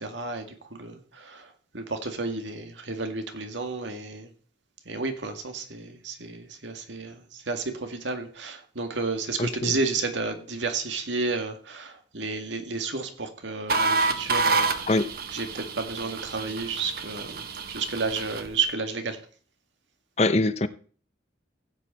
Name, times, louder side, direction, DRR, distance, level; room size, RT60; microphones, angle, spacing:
voice 1, 0.0-4.3 4.9-15.0 15.3-19.2, right 4 dB, 85° right, 2.0 m, -32 dB
voice 2, 9.4-9.8 14.9-15.1 20.2-20.7, left 2 dB, 35° left, 0.7 m, -23 dB
sound 1, 13.7-18.5, right 4 dB, 55° right, 1.1 m, -28 dB
16.0 x 8.1 x 4.3 m
head